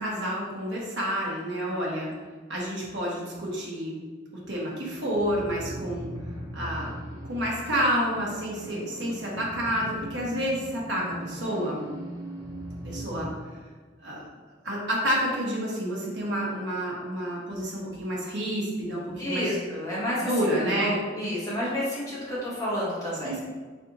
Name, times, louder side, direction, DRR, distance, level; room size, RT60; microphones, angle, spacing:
voice 1, 0.0-2.1 2.5-4.0 4.3-6.1 6.5-11.8 12.8-13.3 14.0-14.2 14.6-19.6 20.2-20.9 23.2-23.4, equal, 75° right, -4 dB, 1.1 m, -29 dB
sound 1, 4.8-13.3, right 1 dB, 20° right, 0.7 m, -40 dB
voice 2, 19.2-20.3 20.6-23.4, equal, 20° left, -8 dB, 1.3 m, -30 dB
4.1 x 3.4 x 2.8 m, 1.4 s
head